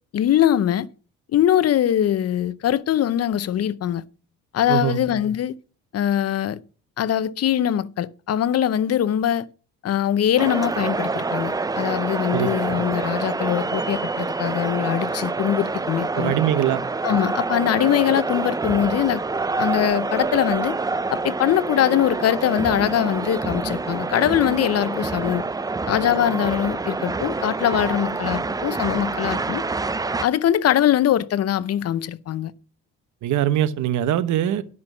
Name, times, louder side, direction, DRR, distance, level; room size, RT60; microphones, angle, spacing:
voice 1, 0.1-0.9 1.3-4.1 4.5-5.6 5.9-6.6 7.0-9.5 9.8-16.4 17.0-19.2 19.6-20.8 21.1-25.4 25.9-29.6 30.2-32.5, left 10 dB, 50° left, 0.7 m, -22 dB
voice 2, 4.7-5.0 12.3-12.5 16.1-16.8 33.2-34.6, right 11 dB, 65° right, 1.0 m, -22 dB
sound 1, 10.4-30.3, right 3 dB, 10° right, 0.4 m, -27 dB
11.0 x 6.1 x 6.0 m
supercardioid pair, 85°, 31 cm